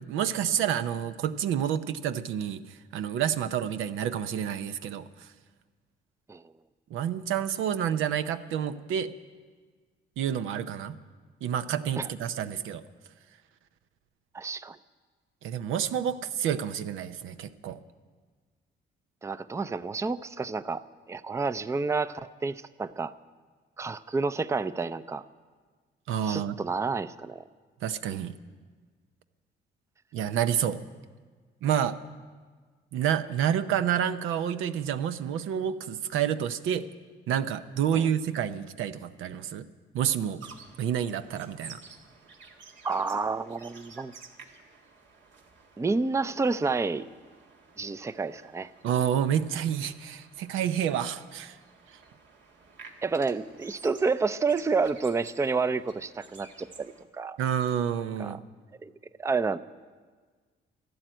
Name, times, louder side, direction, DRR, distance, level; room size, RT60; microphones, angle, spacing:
voice 1, 0.0-5.3 6.9-9.1 10.2-10.9 11.4-12.8 15.4-17.8 26.1-26.6 27.8-28.3 30.1-30.8 31.6-32.0 32.9-36.9 37.3-39.7 39.9-40.4 40.8-41.8 48.8-51.6 57.4-58.4, right 9 dB, 85° right, 11 dB, 0.7 m, -29 dB
voice 2, 14.3-14.8 19.2-20.8 21.1-23.1 23.8-25.2 26.2-27.4 37.9-38.1 42.8-44.1 45.8-47.1 47.8-48.7 53.0-57.4 58.2-58.4 58.8-58.9 59.2-59.6, right 4 dB, 15° right, 14 dB, 0.4 m, -29 dB
sound 1, 40.4-57.0, right 4 dB, 70° right, 1.9 m, -52 dB
12.5 x 12.0 x 9.0 m, 1.5 s
cardioid pair, 90°, 20 cm